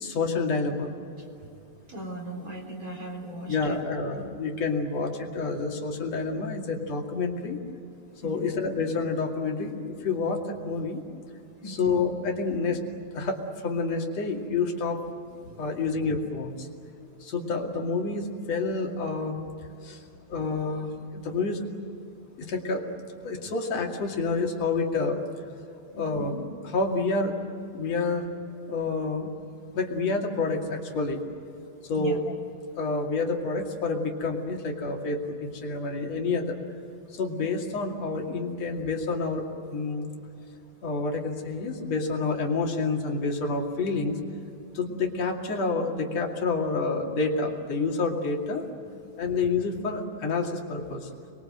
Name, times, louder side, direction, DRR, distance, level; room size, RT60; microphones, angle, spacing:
voice 1, 0.0-0.9 3.5-7.6 8.2-11.0 11.7-12.9 13.1-15.0 15.6-16.7 17.2-19.4 19.8-20.0 20.3-21.6 22.4-22.9 23.2-25.2 25.9-26.4 26.6-27.4 27.7-28.3 28.7-29.3 29.7-31.2 31.8-32.3 32.8-36.6 37.1-40.1 40.8-44.2 44.7-48.7 49.2-51.1, left 3 dB, 50° left, 1 dB, 3.5 m, -28 dB
voice 2, 1.9-3.8 8.2-8.6 9.6-9.7 11.6-12.0 15.5-15.8 20.0-20.5 25.9-26.4 32.0-32.2 48.9-49.2, right 1 dB, 25° right, 1 dB, 4.3 m, -39 dB
27.5 x 22.5 x 7.9 m, 2.6 s
omnidirectional pair, 3.9 m